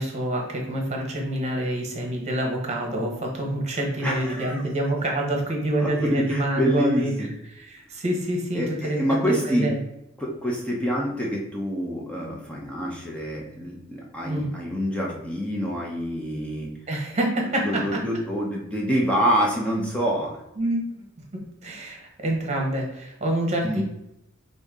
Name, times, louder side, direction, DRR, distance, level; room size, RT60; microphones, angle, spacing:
voice 1, 0.0-7.1 7.6-9.8 14.2-14.5 16.9-18.0 20.6-20.8 21.3-23.8, right 1 dB, 30° right, 0 dB, 1.1 m, -27 dB
voice 2, 4.0-4.6 5.8-7.3 8.5-9.7 10.2-16.7 17.6-20.4 23.6-23.8, equal, 5° left, -4 dB, 0.7 m, -26 dB
5.1 x 2.7 x 3.7 m, 0.85 s
head